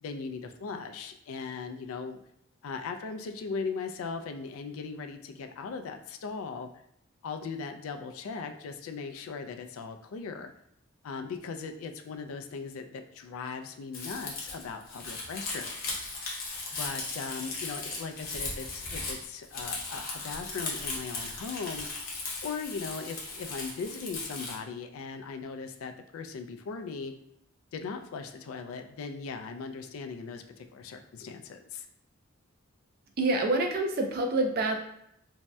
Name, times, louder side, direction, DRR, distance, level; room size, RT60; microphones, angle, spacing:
voice 1, 0.0-2.2 2.6-6.7 7.2-10.5 11.0-16.0 16.7-21.9 22.4-27.1 27.7-31.9, left 5 dB, 75° left, 6 dB, 0.3 m, -38 dB
Crumpling crinkling, 13.9-24.5, left 3 dB, 40° left, 0.7 m, -37 dB
voice 2, 33.2-34.8, right 2 dB, 45° right, 3 dB, 0.4 m, -27 dB
2.6 x 2.1 x 3.3 m, 0.74 s
head